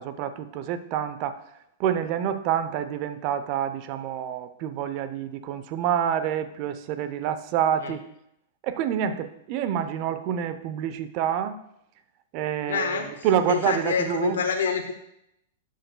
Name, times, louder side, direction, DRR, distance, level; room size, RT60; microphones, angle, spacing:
voice 1, 0.0-1.4 1.8-8.0 8.6-11.6 12.3-14.4, right 9 dB, 45° right, 11 dB, 0.7 m, -27 dB
voice 2, 12.7-13.1 13.5-14.9, left 6 dB, 80° left, 3 dB, 0.9 m, -26 dB
12.0 x 6.5 x 2.3 m, 0.77 s
hypercardioid pair, 120°, 0 cm